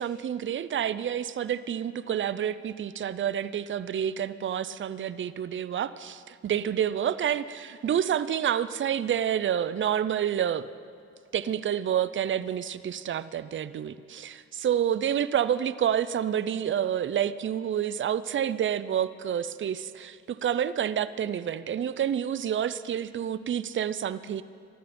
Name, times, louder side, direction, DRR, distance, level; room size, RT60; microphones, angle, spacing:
voice 1, 0.0-10.7 11.3-24.4, right 9 dB, 40° right, 15 dB, 0.6 m, -28 dB
23.5 x 12.5 x 4.3 m, 2.4 s
cardioid pair, 90°, 30 cm